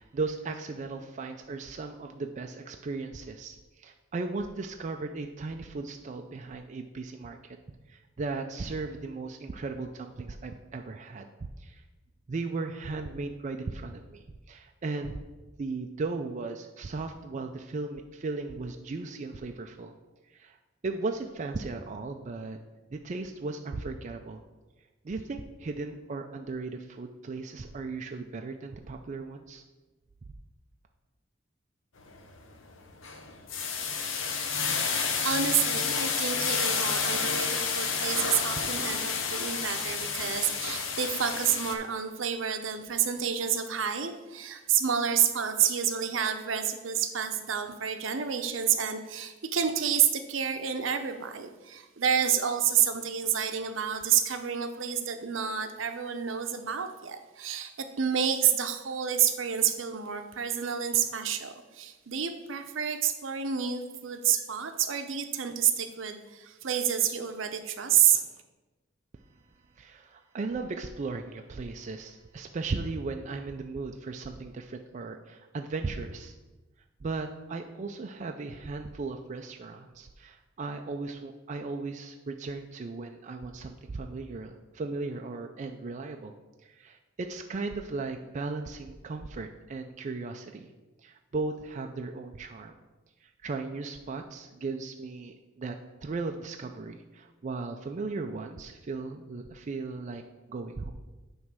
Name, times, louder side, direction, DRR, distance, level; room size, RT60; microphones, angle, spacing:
voice 1, 0.0-7.6 7.9-11.3 11.6-11.8 12.3-15.2 15.6-19.9 20.3-20.6 20.8-22.6 22.9-24.4 25.0-29.6 69.8-76.3 77.0-86.3 86.6-90.7 91.0-92.8 93.2-100.2 100.5-100.9, right 3 dB, 40° right, 4 dB, 0.4 m, -36 dB
sound 1, 32.0-32.3 32.7-41.7, left 5 dB, 70° left, 0.9 m, -30 dB
voice 2, 34.7-68.3, right 8 dB, 70° right, 8 dB, 0.7 m, -29 dB
9.5 x 3.2 x 6.0 m, 1.2 s
head